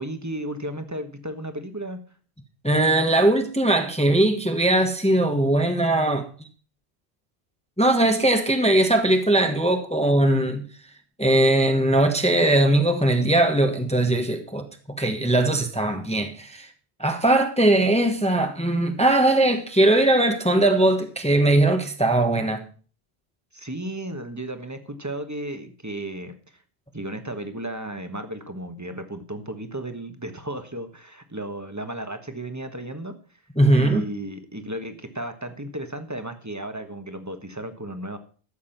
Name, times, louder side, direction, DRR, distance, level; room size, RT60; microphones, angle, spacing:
voice 1, 0.0-2.0 23.5-26.3 26.9-33.1 33.7-38.2, right 1 dB, 15° right, 1.3 m, -34 dB
voice 2, 2.6-6.3 7.8-10.6 11.2-16.7 17.0-22.6 33.6-34.1, right 1 dB, 5° left, 1.2 m, -20 dB
13.5 x 7.3 x 5.8 m
omnidirectional pair, 1.1 m